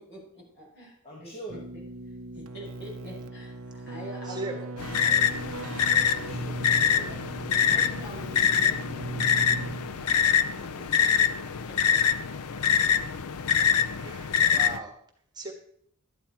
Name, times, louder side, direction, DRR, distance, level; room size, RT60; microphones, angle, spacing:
voice 1, 0.0-0.9 1.2-1.8 2.4-5.5 7.0-7.2 7.5-9.0 11.4-12.3, equal, 50° left, -3 dB, 5.7 m, -46 dB
voice 2, 1.0-1.7 5.4-5.5 6.1-7.1 7.5-7.7 10.4-11.7 14.0-14.2, right 1 dB, 25° left, 0 dB, 1.5 m, -46 dB
Keyboard (musical), 1.5-10.2, right 2 dB, 70° right, 0.7 m, -38 dB
voice 3, 4.2-4.7 14.0-15.0 15.3-15.5, right 2 dB, 20° right, 2 dB, 1.5 m, -37 dB
sound 1, 4.8-14.8, left 8 dB, 85° left, 0.5 m, -25 dB
12.5 x 9.8 x 4.5 m, 0.65 s
head